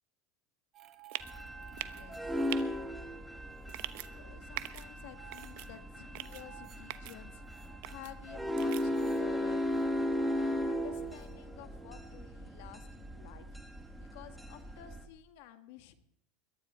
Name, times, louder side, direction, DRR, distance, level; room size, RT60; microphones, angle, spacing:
sound 1, 0.7-3.0 3.3-4.2 4.8-6.9 7.4-11.3, right 15 dB, 40° right, 1.6 m, -57 dB
sound 2, 1.1-1.3 1.8-2.0 2.5-2.6 3.7-4.1 4.6-4.8 5.3-5.7 6.1-6.4 6.9-7.1 7.8-8.1 8.6-8.8, right 17 dB, 70° right, 0.9 m, -40 dB
sound 3, 1.2-15.0, equal, ahead, 1.6 m, -37 dB
voice 1, 1.7-2.4 4.1-7.4 7.9-9.7 10.3-13.6 14.0-15.9, left 12 dB, 70° left, 9 dB, 1.6 m, -52 dB
22.0 x 12.5 x 4.4 m, 0.72 s
supercardioid pair, 120°, 0 cm